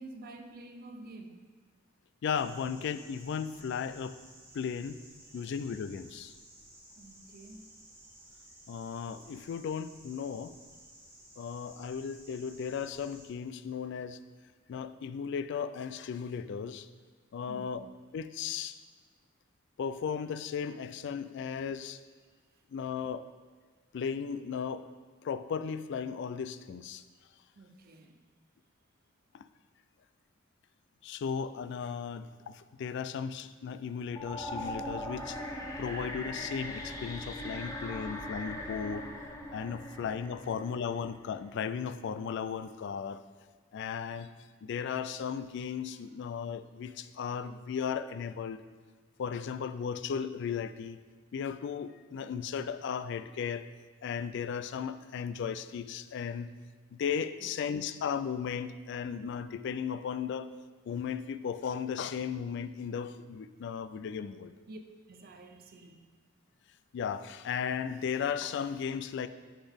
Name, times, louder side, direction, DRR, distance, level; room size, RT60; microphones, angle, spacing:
voice 1, 0.0-1.5 5.2-5.5 6.9-7.8 17.5-17.9 22.5-22.6 27.5-28.2 37.5-38.1 38.4-38.6 39.9-40.0 40.4-40.5 45.9-46.0 57.4-57.8 64.7-64.8 65.1-66.1, right 2 dB, 50° right, 6 dB, 0.5 m, -50 dB
voice 2, 2.2-4.2 4.5-5.0 5.3-6.3 8.7-10.5 11.4-14.2 14.7-16.9 17.3-17.8 18.1-18.8 19.8-22.0 22.7-23.2 23.9-24.9 25.2-27.0 29.3-29.5 31.0-35.4 35.8-39.1 39.5-43.2 43.7-44.3 44.6-48.6 49.2-51.0 51.3-53.7 54.0-56.5 56.9-60.5 60.9-64.5 66.9-69.3, left 7 dB, 60° left, 13 dB, 0.3 m, -36 dB
sound 1, 2.3-13.3, right 1 dB, 15° right, 1.3 m, -55 dB
sound 2, 34.1-41.2, left 1 dB, 15° left, 0.7 m, -40 dB
10.0 x 3.9 x 3.5 m, 1.5 s
head